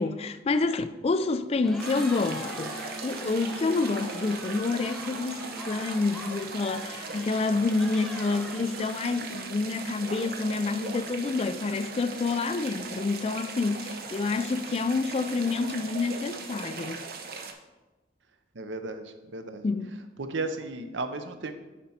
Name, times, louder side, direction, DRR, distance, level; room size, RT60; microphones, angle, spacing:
voice 1, 0.0-17.0 19.6-20.0, left 3 dB, 35° left, 0.4 m, -28 dB
Cheering, 1.5-9.8, equal, ahead, 0.8 m, -44 dB
sound 1, 1.8-17.5, right 4 dB, 55° right, 0.7 m, -39 dB
sound 2, 2.2-6.8, equal, 55° left, 1.4 m, -44 dB
voice 2, 18.5-19.7 20.2-21.5, right 3 dB, 90° right, 0.7 m, -34 dB
9.3 x 4.4 x 4.2 m
head